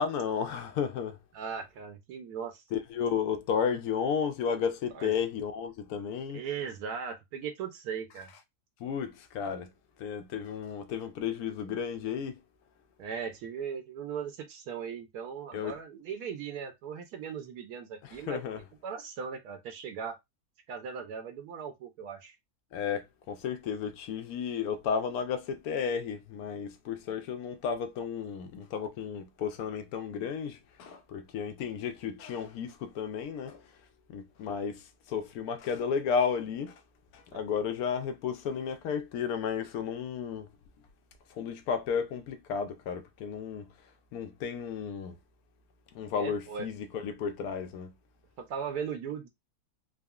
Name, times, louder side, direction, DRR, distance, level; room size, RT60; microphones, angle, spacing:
voice 1, 0.0-1.2 2.7-6.4 8.8-9.7 10.0-12.4 15.5-15.8 18.0-18.6 22.7-33.6 34.1-36.8 37.1-40.5 41.3-43.7 44.1-45.1 45.9-47.9, left 7 dB, 75° left, 1.0 m, -33 dB
voice 2, 1.3-2.6 4.9-5.1 6.3-8.3 13.0-18.4 18.8-20.2 20.7-22.3 37.3-37.4 46.1-46.7 48.4-49.3, right 7 dB, 85° right, 1.1 m, -38 dB
3.7 x 2.0 x 2.3 m
omnidirectional pair, 1.6 m